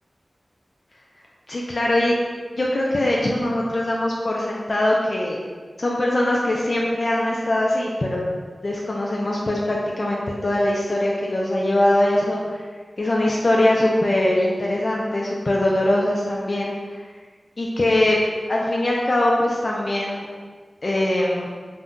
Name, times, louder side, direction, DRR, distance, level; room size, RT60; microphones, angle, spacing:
voice 1, 1.5-2.1 2.5-5.4 5.8-8.2 8.6-12.7 13.0-17.0 17.6-18.2 18.5-20.3 20.8-21.5, left 1 dB, 55° left, -3 dB, 0.3 m, -22 dB
2.5 x 2.2 x 3.6 m, 1.5 s
wide cardioid pair, 65°, 0 cm